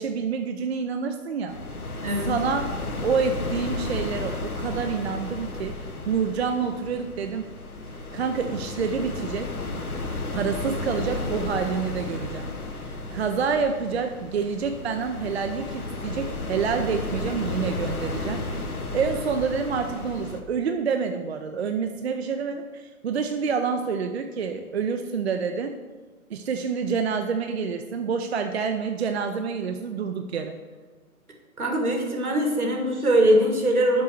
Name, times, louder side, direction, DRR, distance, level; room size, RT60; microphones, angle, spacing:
voice 1, 0.0-1.6 2.2-2.7 3.0-5.8 6.1-7.4 8.1-9.5 10.3-12.5 12.8-18.7 18.9-25.7 26.3-30.6, right 6 dB, 50° right, 6 dB, 0.6 m, -27 dB
sound 1, 1.5-20.4, left 2 dB, 85° left, 1.2 m, -33 dB
voice 2, 31.6-34.0, right 1 dB, 80° right, 2 dB, 2.0 m, -22 dB
6.8 x 5.4 x 6.6 m, 1.4 s
figure-of-eight pair, 125°, 43 cm